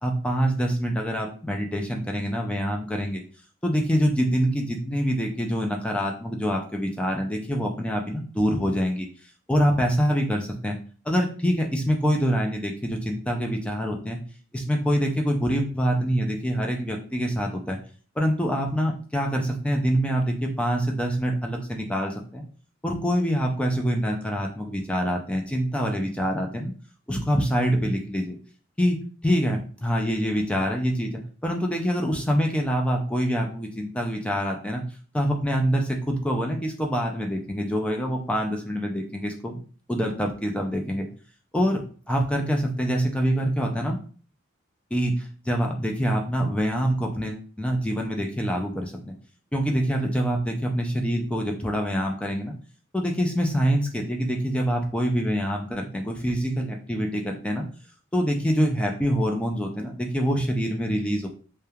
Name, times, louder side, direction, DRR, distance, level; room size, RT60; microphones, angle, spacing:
voice 1, 0.0-3.2 3.6-9.1 9.5-10.8 11.1-14.2 14.5-17.8 18.2-22.4 22.8-26.7 27.1-28.4 28.8-29.0 29.2-34.8 35.1-39.6 39.9-41.1 41.5-41.8 42.1-44.0 44.9-49.1 49.5-52.5 52.9-57.6 58.1-61.3, equal, 5° left, 1 dB, 0.3 m, -25 dB
3.0 x 2.1 x 2.3 m, 0.41 s
head